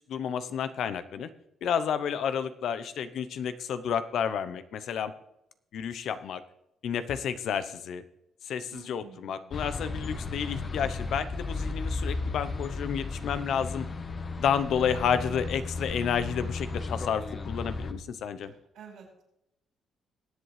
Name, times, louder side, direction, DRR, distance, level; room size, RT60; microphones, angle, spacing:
voice 1, 0.1-1.3 1.6-5.1 5.7-6.4 6.8-8.0 8.4-13.8 14.4-18.5, left 7 dB, 70° left, 12 dB, 0.8 m, -30 dB
voice 2, 8.7-9.6 18.5-19.2, right 6 dB, 75° right, 0 dB, 5.2 m, -50 dB
sound 1, 9.5-17.9, left 3 dB, 40° left, 1.2 m, -34 dB
21.5 x 8.0 x 3.3 m, 0.82 s
cardioid pair, 90°, 0 cm